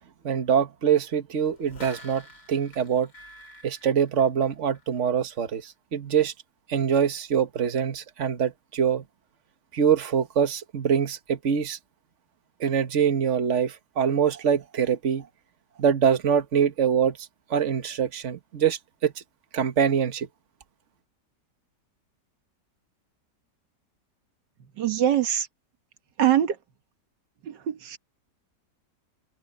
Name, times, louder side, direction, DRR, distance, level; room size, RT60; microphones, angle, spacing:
voice 1, 0.2-3.1 3.6-6.3 6.7-9.0 9.7-11.8 12.6-15.3 15.8-17.2 17.5-19.1 19.5-20.3, right 7 dB, 45° right, 1.6 m, -24 dB
sound 1, 1.4-5.0 5.3-5.4, left 1 dB, 75° left, 6.4 m, -48 dB
voice 2, 24.8-25.5 26.2-26.6 27.4-28.0, right 11 dB, 90° right, 1.9 m, -23 dB
omnidirectional pair, 1.8 m